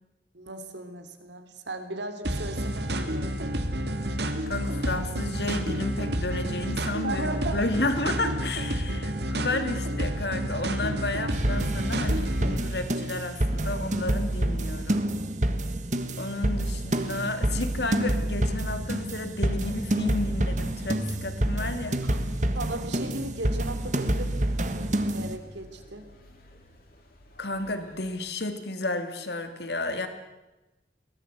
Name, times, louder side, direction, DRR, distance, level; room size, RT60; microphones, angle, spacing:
voice 1, 0.3-3.6 7.0-7.6 22.0-22.2 22.5-26.1, right 2 dB, 90° right, 8 dB, 3.0 m, -37 dB
sound 1, 2.2-12.6, equal, 75° right, 2.2 m, -30 dB
voice 2, 4.5-15.1 16.2-22.0 27.4-30.1, left 2 dB, 75° left, 8 dB, 2.5 m, -32 dB
sound 2, 11.3-25.4, right 1 dB, 45° right, 1.6 m, -28 dB
sound 3, 22.0-28.2, equal, 55° left, 4.0 m, -53 dB
22.5 x 18.5 x 8.2 m, 1.0 s
head